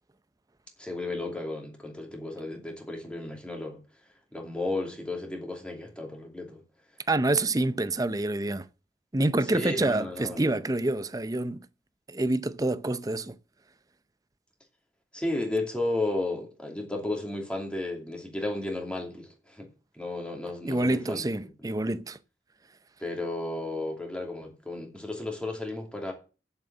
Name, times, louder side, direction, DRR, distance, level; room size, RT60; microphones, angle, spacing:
voice 1, 0.8-3.8 4.3-6.6 9.5-10.6 15.1-19.7 19.9-21.2 23.0-26.1, left 2 dB, 5° left, 2.7 m, -33 dB
voice 2, 7.1-8.7 9.1-11.6 12.1-13.4 20.6-22.2, right 2 dB, 20° right, 0.6 m, -27 dB
8.2 x 7.5 x 7.7 m
head